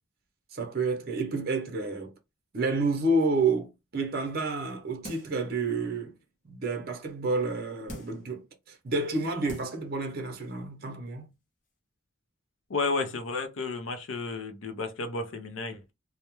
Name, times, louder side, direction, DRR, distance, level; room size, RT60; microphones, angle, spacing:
voice 1, 0.5-2.1 2.5-6.1 6.4-11.3, right 3 dB, 50° right, 0.6 m, -29 dB
sound 1, 5.0-5.5 6.0-6.1 7.9-8.3 9.0-9.1 9.5-9.9 10.3-10.4, left 1 dB, 40° left, 0.7 m, -43 dB
voice 2, 12.7-15.9, left 3 dB, 80° left, 0.5 m, -32 dB
2.2 x 2.0 x 2.9 m
head